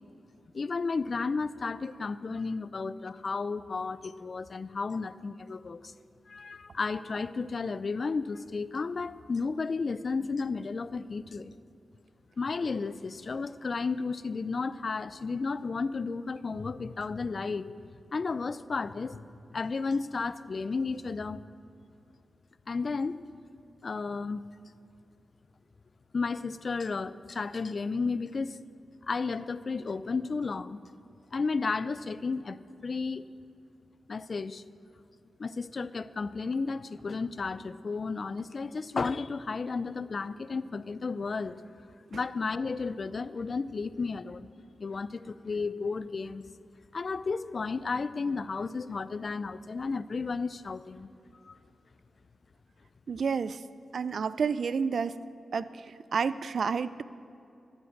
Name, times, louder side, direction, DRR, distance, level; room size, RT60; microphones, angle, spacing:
voice 1, 0.5-5.9 6.3-11.5 12.4-17.7 18.1-19.2 19.5-21.4 22.7-23.2 23.8-24.4 26.1-28.6 29.1-30.8 31.3-33.3 34.1-34.6 35.4-41.6 42.1-44.5 44.8-46.4 46.9-51.1 51.4-51.6, left 4 dB, 55° left, 16 dB, 0.4 m, -33 dB
voice 2, 53.1-53.6 53.9-55.2 55.5-57.0, right 5 dB, 70° right, 16 dB, 0.4 m, -30 dB
14.0 x 8.1 x 6.5 m, 2.7 s
cardioid pair, 65°, 0 cm